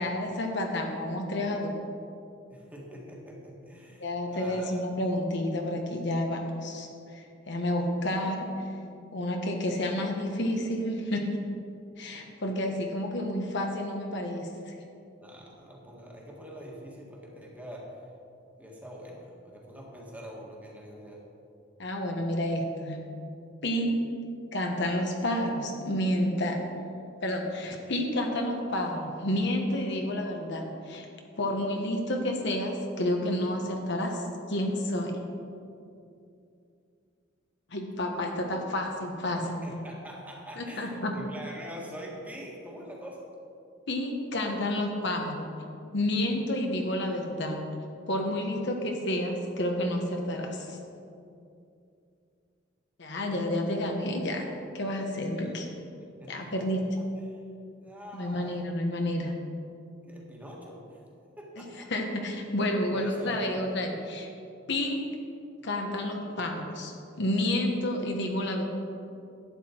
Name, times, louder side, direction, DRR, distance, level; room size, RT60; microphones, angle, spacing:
voice 1, 0.0-1.7 4.0-8.6 9.1-11.3 12.0-14.8 21.8-23.1 23.6-24.0 24.5-26.6 27.2-31.0 31.4-35.2 37.7-39.6 40.6-41.1 43.9-45.5 45.9-47.6 48.1-50.8 53.0-54.5 54.7-55.7 56.3-56.8 58.1-59.4 61.6-61.7 61.9-64.3 64.7-65.0 65.6-66.9 67.2-68.6, left 1 dB, 65° left, 2 dB, 1.2 m, -30 dB
voice 2, 2.5-4.9 15.2-18.0 18.6-21.2 39.6-43.2 55.3-55.5 56.2-56.7 57.3-57.4 57.8-58.7 60.0-61.0 61.4-61.9 62.8-63.8, equal, 10° right, -2 dB, 1.7 m, -44 dB
11.5 x 8.4 x 4.4 m, 2.5 s
head